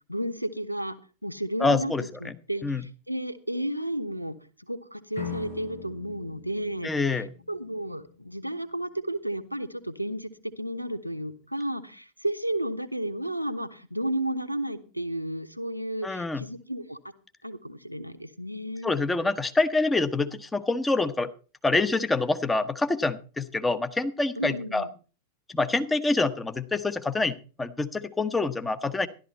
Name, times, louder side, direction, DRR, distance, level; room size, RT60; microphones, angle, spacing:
voice 1, 0.1-1.0 1.2-1.9 2.2-4.4 4.7-7.2 7.5-17.0 17.4-18.9 24.4-24.9, right 1 dB, 90° right, 10 dB, 1.1 m, -32 dB
voice 2, 1.6-2.4 2.6-2.8 6.8-7.3 16.0-16.4 18.8-21.3 21.6-24.9 25.5-29.1, left 3 dB, 10° left, 11 dB, 1.1 m, -26 dB
sound 1, 5.1-8.0, left 5 dB, 80° left, 7.0 m, -41 dB
13.5 x 12.0 x 4.2 m, 0.36 s
figure-of-eight pair, 90°, 0 cm